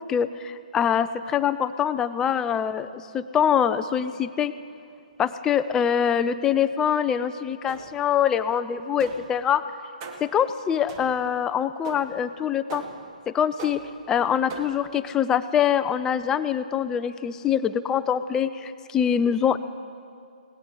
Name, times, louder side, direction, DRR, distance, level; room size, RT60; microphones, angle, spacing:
voice 1, 0.0-4.5 5.2-9.6 10.2-12.8 13.3-13.8 14.1-19.6, left 8 dB, 10° left, 13 dB, 0.4 m, -24 dB
sound 1, 7.7-8.2 9.0-9.4 10.0-10.4 10.9-11.4 11.9-12.3 12.7-13.2 13.6-14.1 14.5-15.0, right 4 dB, 30° right, 1.4 m, -40 dB
21.0 x 18.0 x 3.8 m, 2.3 s
figure-of-eight pair, 135°, 5 cm